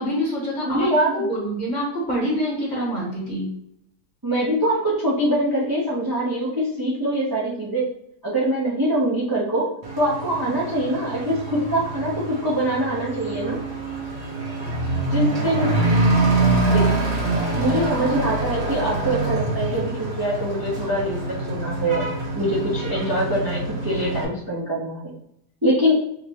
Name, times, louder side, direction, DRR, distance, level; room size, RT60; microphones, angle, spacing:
voice 1, 0.0-0.9 1.1-3.5, equal, 35° left, -4 dB, 1.0 m, -26 dB
voice 2, 0.7-1.4 4.2-7.9 8.2-9.7 10.0-13.6 15.1-15.7 16.6-17.0 17.6-22.0 22.3-25.1 25.6-26.0, right 1 dB, 25° right, -6 dB, 0.4 m, -23 dB
Truck / Accelerating revving vroom, 9.8-24.3, right 2 dB, 50° right, 0.9 m, -25 dB
5.0 x 2.1 x 2.8 m, 0.74 s
omnidirectional pair, 1.7 m